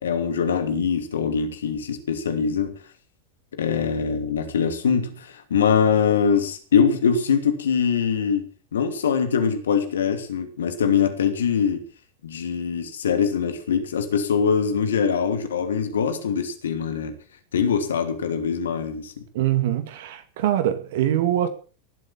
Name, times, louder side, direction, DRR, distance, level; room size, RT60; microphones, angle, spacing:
voice 1, 0.0-2.8 3.5-8.4 8.7-11.8 12.2-17.1 17.5-19.1, left 6 dB, 75° left, 2.7 m, -23 dB
voice 2, 19.3-21.5, right 12 dB, 60° right, 2.4 m, -23 dB
18.0 x 8.2 x 7.4 m
figure-of-eight pair, 90°, 0 cm